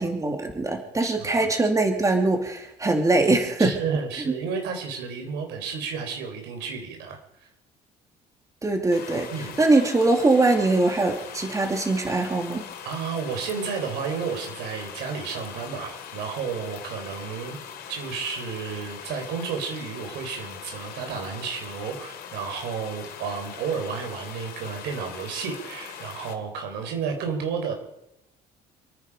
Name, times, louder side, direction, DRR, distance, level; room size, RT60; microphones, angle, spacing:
voice 1, 0.0-3.8 4.3-4.4 8.6-12.7, right 2 dB, 20° right, 3 dB, 2.7 m, -22 dB
voice 2, 1.0-1.5 3.6-7.2 9.3-9.6 12.8-17.6 17.9-27.7, right 6 dB, 85° right, 4 dB, 4.3 m, -32 dB
sound 1, 8.9-26.3, left 8 dB, 65° left, 2.9 m, -41 dB
28.5 x 9.9 x 4.9 m, 0.83 s
cardioid pair, 110°, 17 cm